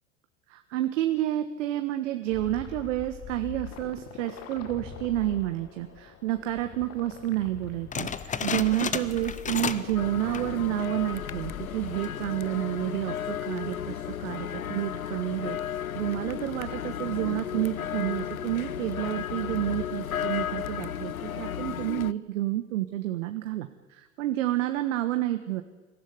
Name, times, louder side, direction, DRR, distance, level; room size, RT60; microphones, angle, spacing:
voice 1, 0.5-25.6, right 14 dB, 60° right, 8 dB, 1.4 m, -30 dB
sound 1, 2.3-12.3, left 9 dB, 35° left, 2.1 m, -44 dB
sound 2, 7.9-10.0 10.2-10.6 11.1-11.2 11.9-12.2, left 6 dB, 20° left, 1.0 m, -32 dB
sound 3, 10.0-22.1, left 9 dB, 80° left, 0.7 m, -34 dB
23.5 x 15.0 x 9.6 m, 1.2 s
figure-of-eight pair, 75°, 42 cm